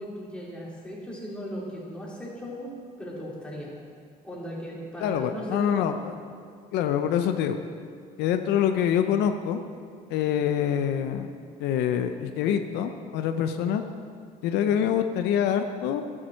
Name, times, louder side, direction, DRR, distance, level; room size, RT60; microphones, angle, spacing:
voice 1, 0.0-3.7 4.2-5.9, equal, 5° left, -5 dB, 3.1 m, -37 dB
voice 2, 5.0-6.2 6.7-7.6 8.2-9.6 10.1-11.3 11.6-13.8 14.4-16.0, left 9 dB, 90° left, 8 dB, 0.6 m, -25 dB
11.0 x 7.5 x 6.2 m, 2.1 s
cardioid pair, 110°, 17 cm